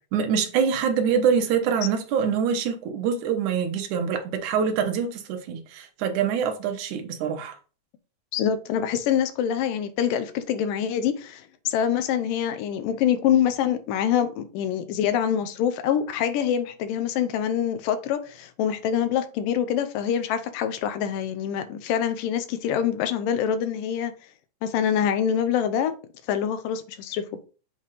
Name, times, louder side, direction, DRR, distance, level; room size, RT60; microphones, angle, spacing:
voice 1, 0.1-7.6, right 7 dB, 70° right, 2.3 m, -25 dB
voice 2, 8.3-24.1 24.6-25.9 26.3-27.2, left 9 dB, 85° left, 2.4 m, -25 dB
7.7 x 3.5 x 4.0 m
omnidirectional pair, 3.8 m